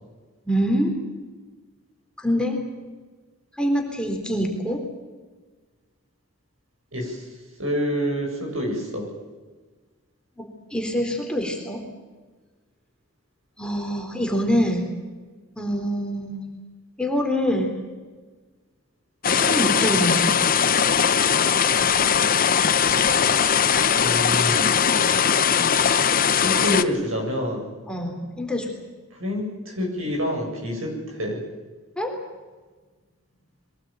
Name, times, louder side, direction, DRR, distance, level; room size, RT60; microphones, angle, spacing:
voice 1, 0.5-0.9 2.2-2.6 3.5-4.8 10.4-11.8 13.6-14.9 15.6-16.4 17.0-17.7 19.3-20.3 27.9-28.8 32.0-32.1, equal, 5° left, 1 dB, 3.9 m, -25 dB
voice 2, 6.9-7.3 7.6-9.1 23.3-24.9 26.4-27.7 29.1-31.4, equal, 75° right, 1 dB, 7.8 m, -28 dB
sound 1, 19.2-26.8, left 7 dB, 45° left, 0.9 m, -20 dB
23.0 x 19.0 x 9.1 m, 1.3 s
head